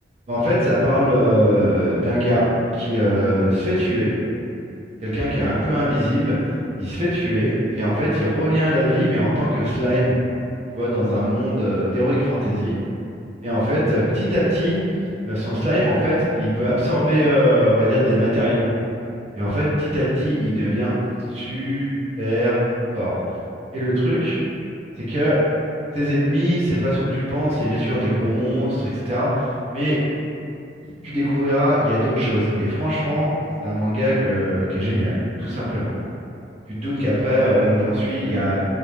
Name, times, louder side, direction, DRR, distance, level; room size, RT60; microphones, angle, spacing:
voice 1, 0.3-4.1 5.0-10.1 10.7-12.8 13.4-14.8 15.3-18.7 19.3-20.9 21.3-21.9 22.2-22.6 22.9-23.1 23.7-24.4 25.0-25.4 25.9-30.0 30.8-33.3 33.6-35.9 36.7-38.6, equal, 40° right, -10 dB, 0.6 m, -21 dB
2.3 x 2.0 x 3.0 m, 2.6 s
head